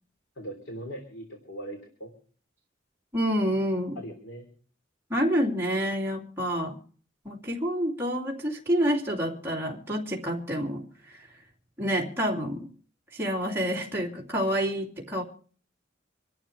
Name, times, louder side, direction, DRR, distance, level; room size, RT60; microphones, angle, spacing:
voice 1, 0.4-2.1 4.0-4.5, right 1 dB, 70° left, 4 dB, 3.3 m, -40 dB
voice 2, 3.1-4.0 5.1-6.8 7.2-11.3 11.8-12.7 13.1-15.2, equal, 15° right, -5 dB, 2.9 m, -28 dB
26.5 x 12.0 x 3.3 m, 0.43 s
head